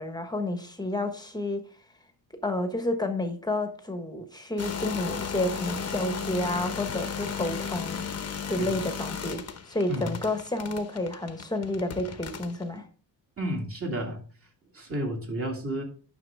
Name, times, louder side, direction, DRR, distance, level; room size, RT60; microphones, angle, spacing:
voice 1, 0.0-1.6 2.4-12.9, left 1 dB, 10° left, 1.2 m, -30 dB
sound 1, 4.6-12.6, left 6 dB, 35° left, 1.0 m, -35 dB
voice 2, 9.9-10.2 13.4-14.2 14.7-15.8, equal, 30° right, 2.2 m, -32 dB
9.7 x 6.2 x 3.5 m
cardioid pair, 140°, 45 cm